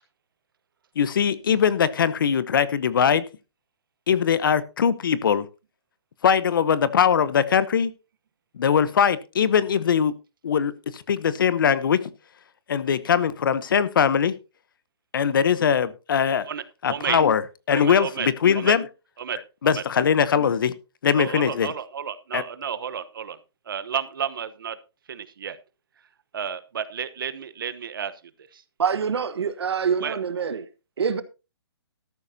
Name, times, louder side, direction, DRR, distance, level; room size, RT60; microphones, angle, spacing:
voice 1, 1.0-3.2 4.1-5.5 6.2-7.9 8.6-10.1 10.4-12.0 12.7-14.3 15.1-16.5 16.8-17.4 17.7-18.9 19.6-20.7 21.0-21.7 22.3-22.4, left 7 dB, 55° left, 0.9 m, -21 dB
voice 2, 16.5-17.2 17.7-18.3 18.5-18.7 19.2-19.4 19.6-19.8 21.1-23.4 23.7-24.8 25.1-25.6 26.3-28.1 28.5-28.6 30.0-30.2, right 8 dB, 55° right, 1.1 m, -31 dB
voice 3, 28.8-30.7 31.0-31.2, right 6 dB, 75° right, 1.3 m, -25 dB
13.0 x 12.0 x 2.8 m
hypercardioid pair, 170°, 14 cm